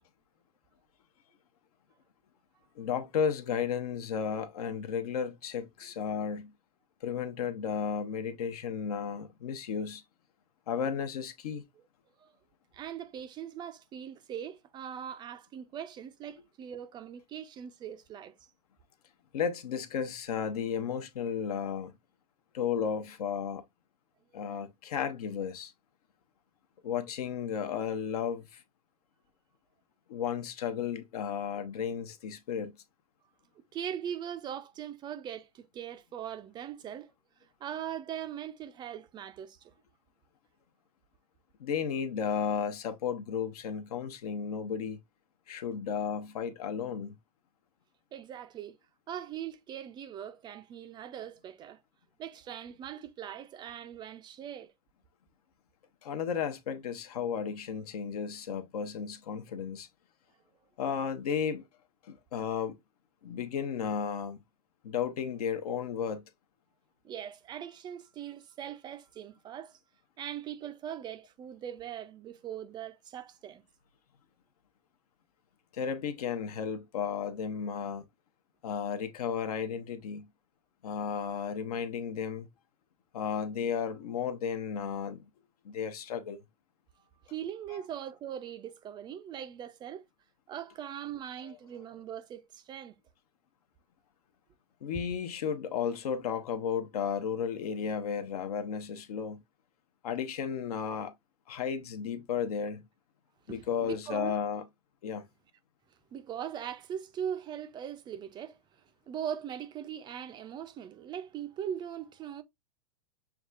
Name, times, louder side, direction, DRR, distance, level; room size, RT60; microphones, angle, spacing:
voice 1, 2.8-6.5 7.0-10.0 10.7-11.6 19.3-21.9 22.5-23.6 24.3-25.7 26.8-28.6 30.1-32.7 41.6-45.0 45.5-47.2 56.0-59.9 60.8-61.7 62.0-62.8 63.2-64.4 64.8-66.2 75.7-78.0 78.6-80.3 80.8-82.5 83.1-85.2 85.6-86.4 87.7-87.8 94.8-99.4 100.0-101.1 101.5-102.8 103.5-104.6 105.0-105.3, left 7 dB, 65° left, 0.8 m, -33 dB
voice 2, 12.7-18.3 24.3-24.4 33.7-37.1 37.4-39.7 48.1-48.8 49.1-51.8 52.2-54.7 67.0-69.8 70.2-73.6 87.3-90.0 90.5-93.0 103.5-104.4 106.1-108.6 109.1-112.4, right 9 dB, 20° right, 0.4 m, -40 dB
6.9 x 2.3 x 2.4 m
hypercardioid pair, 115°, 20 cm